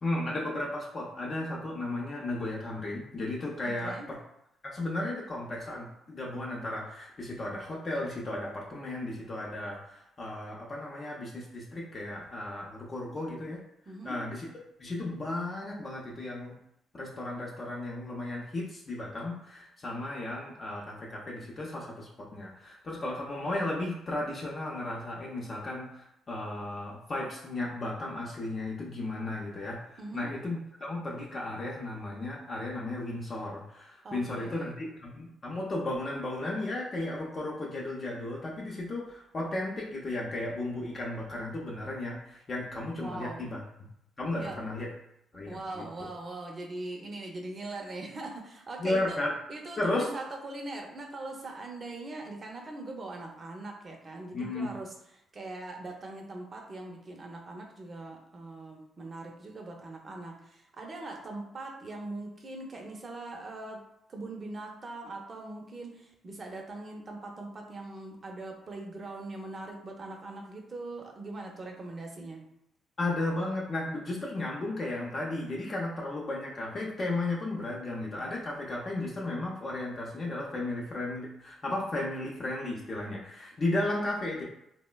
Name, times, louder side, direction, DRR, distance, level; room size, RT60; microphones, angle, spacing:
voice 1, 0.0-4.2 4.6-13.6 14.0-14.5 14.8-16.6 16.9-29.9 30.1-43.9 44.2-44.9 45.3-45.8 48.8-49.3 49.8-50.1 54.3-54.7 73.0-84.4, left 2 dB, 40° left, -3 dB, 0.5 m, -34 dB
voice 2, 3.6-4.1 13.9-14.2 30.0-30.3 34.0-34.8 43.0-43.4 44.3-44.7 45.5-49.2 49.5-55.0 55.3-63.8 64.1-72.5, right 2 dB, 35° right, 1 dB, 0.6 m, -41 dB
3.1 x 2.1 x 2.2 m, 0.80 s
cardioid pair, 90°, 0 cm